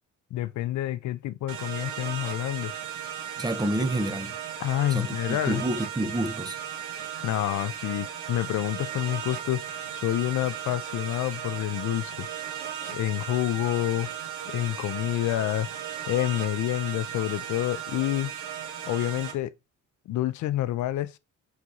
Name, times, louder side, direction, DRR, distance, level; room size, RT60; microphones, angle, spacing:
voice 1, 0.3-2.7 4.6-5.6 7.2-12.3 12.9-14.1 14.5-15.7 16.1-18.3 18.9-19.6 20.1-21.2, left 14 dB, 70° left, 0.5 m, -28 dB
sound 1, 1.5-19.3, right 9 dB, 75° right, 1.2 m, -36 dB
voice 2, 3.4-4.3 4.9-6.6, right 1 dB, 15° right, 0.6 m, -28 dB
4.5 x 4.0 x 2.4 m
cardioid pair, 90°, 30 cm